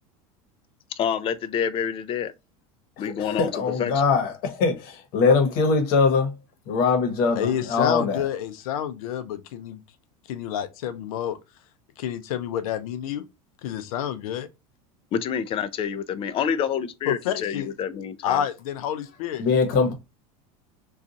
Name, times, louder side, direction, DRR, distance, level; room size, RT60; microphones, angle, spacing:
voice 1, 1.0-2.3 3.0-3.9 15.1-18.4, left 8 dB, 30° left, 0.4 m, -27 dB
voice 2, 3.0-6.4 6.7-8.2 19.4-19.9, left 4 dB, 55° left, 1.0 m, -22 dB
voice 3, 7.4-9.8 10.3-11.4 12.0-13.2 13.6-14.5 17.1-17.7 18.2-19.5, left 10 dB, 85° left, 0.5 m, -29 dB
2.5 x 2.4 x 3.9 m
supercardioid pair, 110°, 18 cm